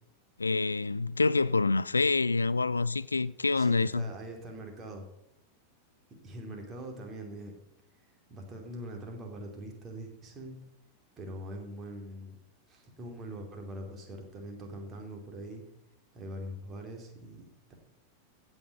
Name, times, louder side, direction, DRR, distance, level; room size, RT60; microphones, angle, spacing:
voice 1, 0.4-4.1, left 3 dB, 80° left, 0.3 m, -27 dB
voice 2, 3.6-5.1 6.2-7.5 8.3-10.6 11.2-12.4 12.7-15.6 16.1-17.7, right 1 dB, 25° right, 2.9 m, -43 dB
16.0 x 5.7 x 6.8 m
figure-of-eight pair, 90°, 0 cm